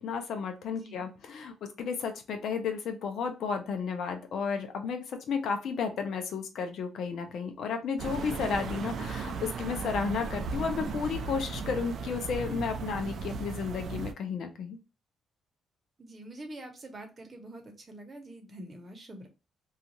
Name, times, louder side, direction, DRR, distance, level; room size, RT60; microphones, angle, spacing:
voice 1, 0.0-14.8, left 5 dB, 70° left, 6 dB, 0.6 m, -33 dB
voice 2, 0.7-1.1 16.0-19.3, right 1 dB, 30° right, 3 dB, 0.9 m, -46 dB
Helicopter over Christianshavn, 8.0-14.1, right 4 dB, 60° right, 0.4 m, -36 dB
2.4 x 2.4 x 2.9 m, 0.30 s
cardioid pair, 90°, 0 cm